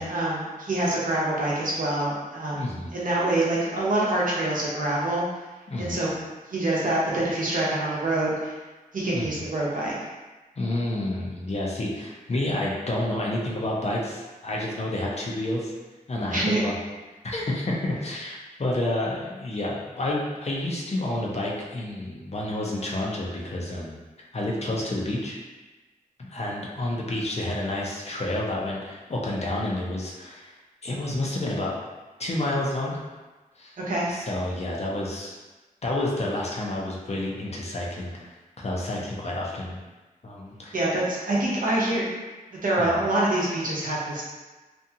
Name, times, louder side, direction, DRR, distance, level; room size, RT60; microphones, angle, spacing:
voice 1, 0.0-2.7 2.9-5.2 5.8-6.1 6.5-8.5 8.9-9.9 16.3-16.6 33.8-34.1 40.7-42.0 42.5-44.2, right 1 dB, 65° right, -6 dB, 0.7 m, -25 dB
voice 2, 2.5-2.9 5.7-6.0 9.1-9.4 10.6-15.7 16.1-16.8 17.2-24.0 24.3-25.4 26.3-30.5 30.8-31.8 32.2-33.0 33.6-33.8 34.1-35.4 35.8-39.8 40.2-40.8 42.8-43.0, left 1 dB, 45° left, -3 dB, 0.5 m, -29 dB
2.6 x 2.3 x 2.7 m, 1.2 s
wide cardioid pair, 105°, 15 cm